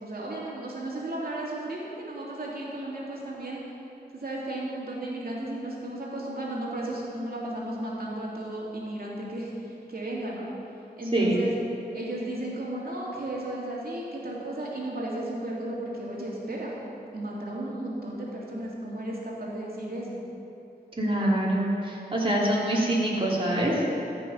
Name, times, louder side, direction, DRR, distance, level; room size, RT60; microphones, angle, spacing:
voice 1, 0.0-3.6 4.1-10.5 11.0-11.5 11.9-16.8 17.1-20.2, right 1 dB, 60° right, -4 dB, 2.8 m, -34 dB
voice 2, 21.0-23.9, right 1 dB, 30° right, -5 dB, 3.0 m, -25 dB
14.5 x 6.2 x 5.6 m, 2.8 s
cardioid pair, 45°, 17 cm